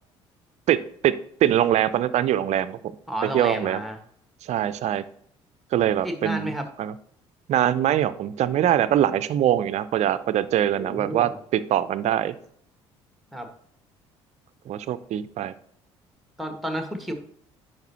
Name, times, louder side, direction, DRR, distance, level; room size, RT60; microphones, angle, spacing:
voice 1, 1.4-2.8 3.3-3.8 4.4-5.0 5.7-6.5 6.8-6.9 7.5-12.3 14.7-15.5, right 11 dB, 50° right, 15 dB, 0.5 m, -23 dB
voice 2, 3.1-4.0 6.0-6.7 10.7-11.3 13.3-13.5 16.4-17.1, equal, ahead, 5 dB, 1.5 m, -31 dB
10.5 x 4.6 x 2.9 m, 0.65 s
figure-of-eight pair, 55°, 15 cm